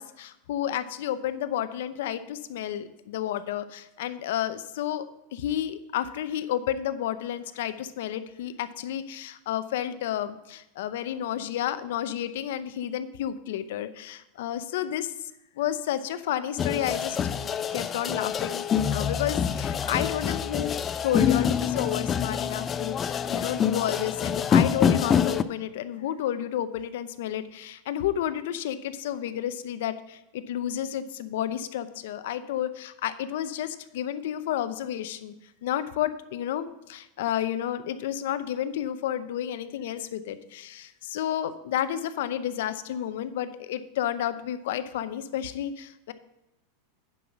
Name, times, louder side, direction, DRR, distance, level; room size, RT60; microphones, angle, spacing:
voice 1, 0.0-5.0 5.3-15.1 15.6-17.2 17.7-20.8 21.0-35.3 35.6-46.1, left 11 dB, 70° left, 12 dB, 0.7 m, -31 dB
sound 1, 16.6-25.4, left 8 dB, 25° left, 0.4 m, -26 dB
9.2 x 5.6 x 6.0 m, 0.91 s
supercardioid pair, 145°, 0 cm